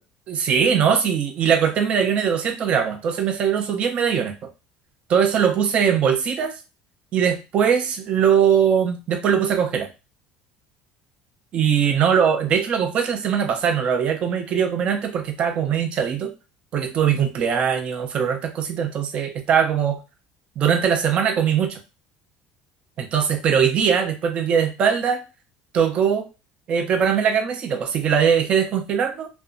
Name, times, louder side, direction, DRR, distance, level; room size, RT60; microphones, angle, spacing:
voice 1, 0.3-4.3 5.1-6.5 7.1-9.9 11.5-16.3 16.7-20.0 20.6-21.8 23.0-25.2 25.7-26.3 26.7-29.3, right 7 dB, 40° right, 5 dB, 0.5 m, -21 dB
2.7 x 2.1 x 2.5 m, 0.29 s
cardioid pair, 135°, 3 cm